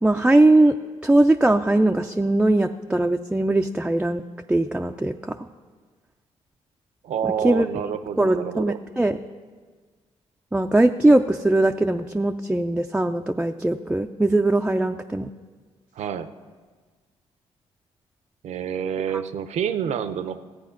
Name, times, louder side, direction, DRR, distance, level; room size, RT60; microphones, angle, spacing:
voice 1, 0.0-0.8 1.0-4.2 4.5-5.4 7.4-7.7 8.2-9.2 10.5-15.3, right 2 dB, 10° right, 4 dB, 0.4 m, -20 dB
voice 2, 7.0-8.8 16.0-16.3 18.4-20.4, right 8 dB, 70° right, 11 dB, 0.7 m, -28 dB
14.5 x 8.3 x 5.7 m, 1.5 s
cardioid pair, 80°, 12 cm